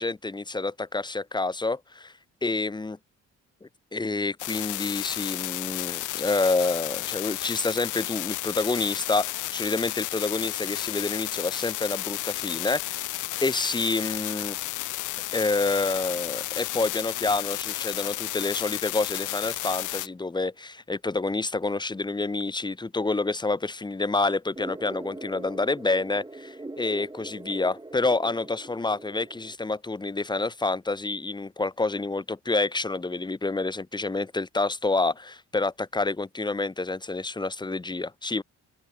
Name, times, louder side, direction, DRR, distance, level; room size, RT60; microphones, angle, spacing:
voice 1, 0.0-2.1 2.4-3.0 3.6-14.6 15.3-38.4, left 3 dB, 15° left, 1.1 m, -28 dB
sound 1, 4.4-20.1, left 17 dB, 80° left, 0.7 m, -32 dB
sound 2, 24.6-29.6, right 2 dB, 15° right, 5.4 m, -41 dB
open air
cardioid pair, 90°, 30 cm